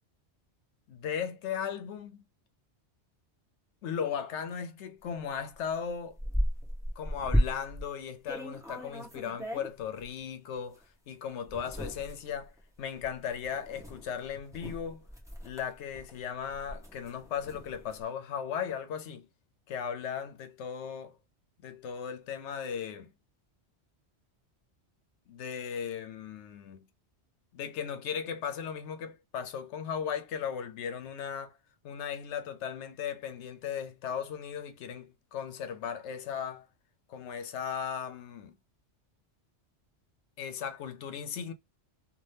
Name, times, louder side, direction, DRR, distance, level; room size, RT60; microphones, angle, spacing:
voice 1, 0.9-2.2 3.8-6.2 7.0-12.5 12.8-15.0 15.4-19.3 19.7-21.2 21.6-23.1 25.3-26.9 27.5-31.6 31.8-36.7 37.1-38.6 40.4-41.5, left 7 dB, 90° left, 0.9 m, -37 dB
sound 1, 5.2-5.3 5.7-7.9 8.3-10.1 10.7-10.8 11.5-18.0, equal, 5° right, 0.8 m, -35 dB
2.7 x 2.5 x 3.3 m
omnidirectional pair, 1.1 m